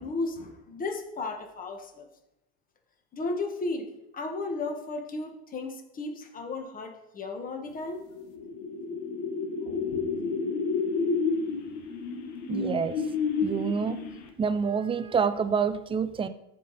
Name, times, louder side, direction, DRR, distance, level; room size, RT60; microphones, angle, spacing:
voice 1, 0.0-2.1 3.1-8.0, left 3 dB, 25° left, 4 dB, 1.5 m, -34 dB
sound 1, 8.0-14.5, left 4 dB, 65° left, 1.5 m, -30 dB
voice 2, 12.5-13.0 13.4-14.0 14.4-16.3, right 6 dB, 15° right, 11 dB, 0.4 m, -27 dB
13.5 x 5.2 x 4.2 m, 0.86 s
supercardioid pair, 130°, 33 cm